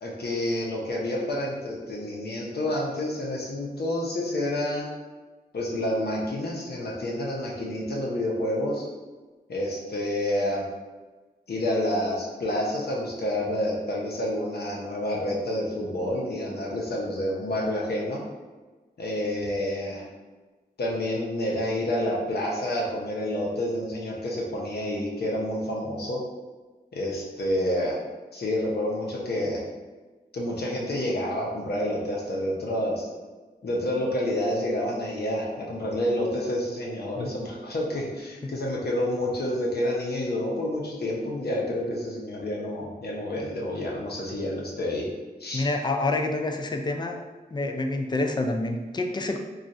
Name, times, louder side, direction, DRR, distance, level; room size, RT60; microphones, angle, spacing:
voice 1, 0.0-4.9 5.5-8.9 9.5-10.7 11.5-18.2 19.0-20.1 20.8-26.2 26.9-28.0 28.3-29.6 30.3-33.1 33.6-45.1 45.4-45.6, left 1 dB, 75° left, -3 dB, 0.8 m, -29 dB
voice 2, 45.5-47.2 47.5-49.4, left 2 dB, 25° left, 4 dB, 0.3 m, -27 dB
2.4 x 2.4 x 4.1 m, 1.3 s
wide cardioid pair, 85°, 17 cm